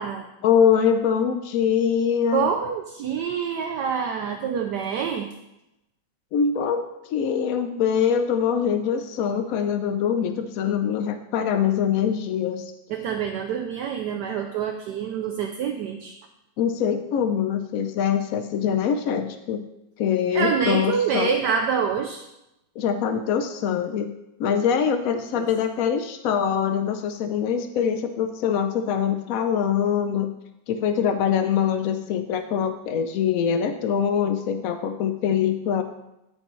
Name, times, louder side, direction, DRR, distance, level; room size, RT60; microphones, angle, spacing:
voice 1, 0.4-2.5 6.3-12.7 16.6-19.6 20.0-21.3 22.8-24.1 24.4-30.3 30.7-35.8, left 7 dB, 85° left, 8 dB, 0.7 m, -23 dB
voice 2, 2.3-5.3 12.9-16.2 20.3-22.2 25.4-25.5, right 6 dB, 70° right, 5 dB, 1.1 m, -26 dB
14.0 x 5.3 x 3.1 m, 0.88 s
omnidirectional pair, 2.1 m